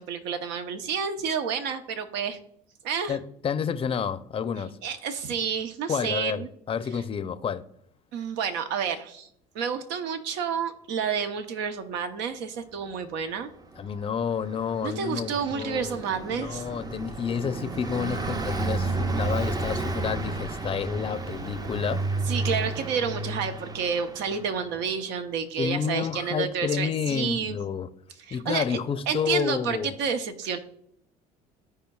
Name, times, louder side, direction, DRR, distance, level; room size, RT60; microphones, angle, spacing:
voice 1, 0.0-2.4 2.8-3.2 4.8-6.5 8.1-9.3 9.5-13.5 14.8-16.6 22.3-27.6 28.2-28.8 29.1-30.6, right 6 dB, 70° right, 0.9 m, -30 dB
voice 2, 3.1-4.8 5.9-7.6 13.8-16.0 16.3-22.0 25.6-27.9 28.3-29.9, left 7 dB, 30° left, 0.6 m, -30 dB
Car passing by, 13.8-24.8, right 3 dB, 20° right, 0.6 m, -32 dB
14.5 x 4.9 x 2.4 m
hypercardioid pair, 75°, 19 cm